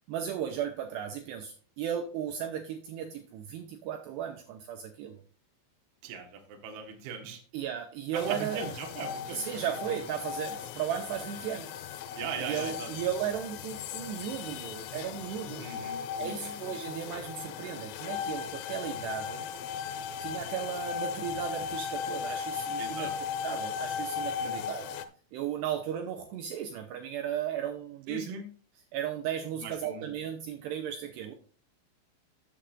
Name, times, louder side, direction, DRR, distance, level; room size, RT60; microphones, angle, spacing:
voice 1, 0.0-5.2 7.5-8.6 9.3-11.7 12.4-15.7 16.2-19.5 20.2-24.9 25.3-28.3 28.9-31.3, right 9 dB, 85° right, 5 dB, 2.5 m, -35 dB
voice 2, 6.0-7.4 8.1-9.9 12.2-12.9 15.6-16.6 22.8-23.1 24.4-24.7 28.1-28.5 29.5-30.1, right 5 dB, 65° right, 3 dB, 2.8 m, -39 dB
sound 1, 8.2-25.1, left 7 dB, 90° left, 3.3 m, -37 dB
13.5 x 7.8 x 2.5 m, 0.42 s
omnidirectional pair, 5.8 m